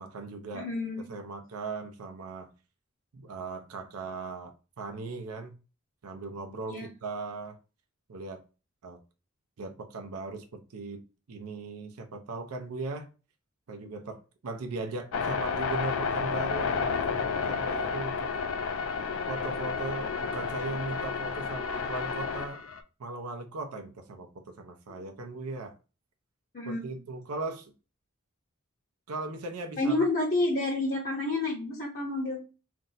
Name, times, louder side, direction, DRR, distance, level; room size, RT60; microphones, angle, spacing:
voice 1, 0.0-0.7 1.1-2.5 3.1-5.5 6.0-7.6 8.1-8.4 8.8-9.0 9.6-11.0 11.3-13.1 13.7-18.3 19.3-22.6 23.0-25.7 26.6-27.7 29.1-30.1, right 3 dB, 90° right, 0.5 m, -38 dB
voice 2, 0.5-1.0 6.7-6.9 24.9-25.0 26.5-26.8 29.8-32.4, left 2 dB, 40° left, 0.7 m, -29 dB
sound 1, 15.1-22.8, left 5 dB, 65° left, 0.4 m, -31 dB
2.5 x 2.1 x 3.8 m
head